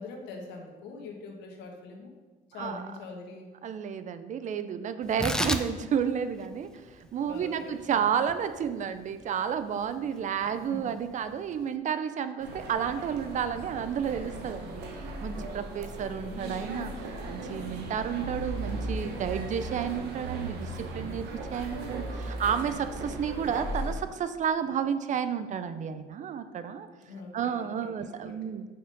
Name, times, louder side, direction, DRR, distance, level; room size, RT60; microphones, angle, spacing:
voice 1, 0.0-2.1 2.5-3.5 7.3-8.0 10.7-10.8 27.0-28.4, left 3 dB, 90° left, 2 dB, 1.3 m, -43 dB
voice 2, 3.6-6.8 7.1-14.8 15.2-16.9 17.3-26.9 27.3-28.7, right 8 dB, 45° right, 11 dB, 0.5 m, -31 dB
Tearing, 5.0-11.8, left 1 dB, 5° left, 0.4 m, -37 dB
sound 1, 12.4-24.0, right 2 dB, 80° right, 1.3 m, -37 dB
5.7 x 5.5 x 5.2 m, 1.3 s
cardioid pair, 110°, 17 cm